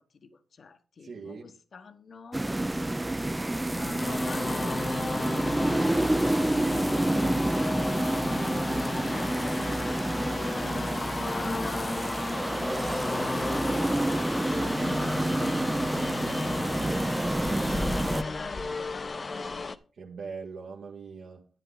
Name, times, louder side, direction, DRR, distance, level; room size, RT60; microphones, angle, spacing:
voice 1, 0.0-2.9 3.2-4.9 5.2-12.0 12.3-19.8, left 4 dB, 55° left, 1.0 m, -47 dB
voice 2, 1.0-1.5 19.9-21.5, right 5 dB, 70° right, 1.6 m, -42 dB
sound 1, 2.3-18.2, right 1 dB, 15° right, 0.5 m, -28 dB
circular saw, 4.0-19.8, left 3 dB, 35° left, 0.7 m, -34 dB
11.0 x 9.7 x 3.8 m
cardioid pair, 90°, 0 cm